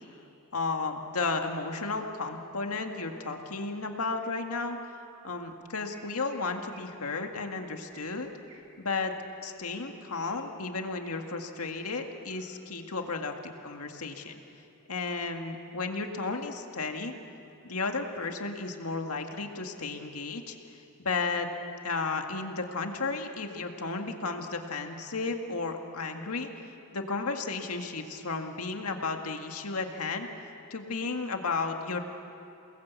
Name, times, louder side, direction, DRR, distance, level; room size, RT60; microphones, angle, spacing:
voice 1, 0.5-4.8 5.2-8.3 8.8-9.1 9.4-14.4 14.9-17.1 17.6-21.5 21.8-32.0, left 3 dB, 70° left, 4 dB, 2.0 m, -33 dB
Chirp tweet, 5.9-6.4 6.7-6.9 7.2-7.6 7.9-8.6 9.0-10.3 10.6-11.1 11.5-11.8 12.2-12.6, right 4 dB, 65° right, 6.1 m, -58 dB
29.0 x 20.0 x 8.4 m, 2.8 s
head